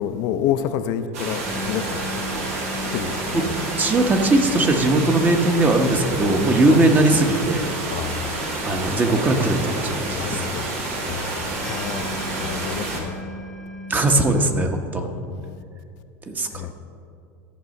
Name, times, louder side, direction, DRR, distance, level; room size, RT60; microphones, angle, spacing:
voice 1, 0.0-2.1 2.9-3.4 6.7-6.8 7.9-8.4 10.1-10.7 11.0-12.1 12.4-13.2 15.0-15.6 16.5-16.7, left 9 dB, 60° left, 9 dB, 0.5 m, -29 dB
sound 1, 1.1-13.0, right 2 dB, 85° right, 1.9 m, -29 dB
sound 2, 1.4-14.5, equal, 10° left, 0.7 m, -38 dB
voice 2, 3.3-7.6 8.7-10.4 13.9-15.1 16.3-16.7, right 2 dB, 25° right, 5 dB, 1.0 m, -20 dB
14.0 x 5.5 x 5.3 m, 2.4 s
supercardioid pair, 120°, 8 cm